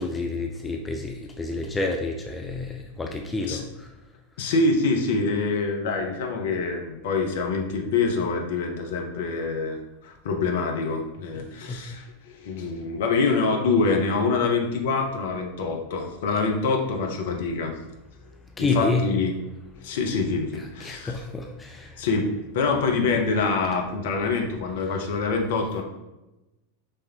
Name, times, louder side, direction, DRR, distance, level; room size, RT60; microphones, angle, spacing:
voice 1, 0.0-3.9 11.3-11.8 18.6-19.1 20.5-22.0 24.9-25.1, left 3 dB, 15° left, 2 dB, 0.4 m, -29 dB
voice 2, 4.4-12.0 12.4-17.7 18.7-19.3 19.8-21.1 22.0-22.3 22.5-25.8, left 4 dB, 55° left, 2 dB, 0.8 m, -25 dB
5.4 x 3.3 x 2.8 m, 0.98 s
figure-of-eight pair, 90°, 0 cm